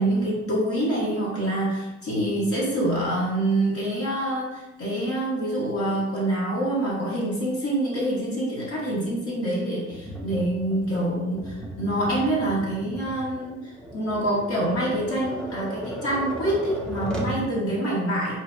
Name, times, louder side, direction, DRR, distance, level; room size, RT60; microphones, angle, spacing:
voice 1, 0.0-18.4, right 1 dB, 50° left, -6 dB, 0.9 m, -26 dB
Tap, 9.9-17.4, right 1 dB, 5° left, 0.5 m, -36 dB
3.2 x 2.2 x 2.4 m, 1.0 s
cardioid pair, 90°, 30 cm